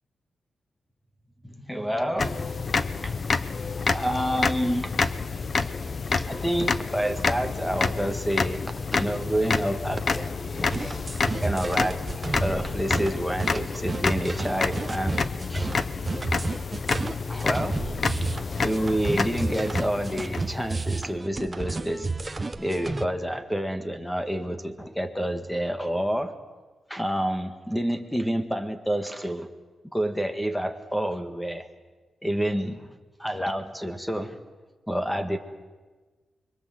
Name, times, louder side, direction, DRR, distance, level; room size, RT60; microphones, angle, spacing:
voice 1, 1.4-2.5 3.0-3.2 3.9-5.2 5.6-5.7 6.1-8.6 8.9-10.9 11.4-12.1 12.4-15.7 17.3-18.0 18.6-22.1 22.6-26.4 26.9-29.5 29.9-31.7 32.2-32.9 33.2-34.4 34.9-35.4, equal, 5° left, 8 dB, 1.6 m, -29 dB
sound 1, 2.2-20.9, left 4 dB, 35° left, 0.7 m, -29 dB
sound 2, 10.7-23.1, right 3 dB, 20° right, 1.0 m, -31 dB
29.5 x 23.5 x 7.8 m, 1.3 s
wide cardioid pair, 170°, 0 cm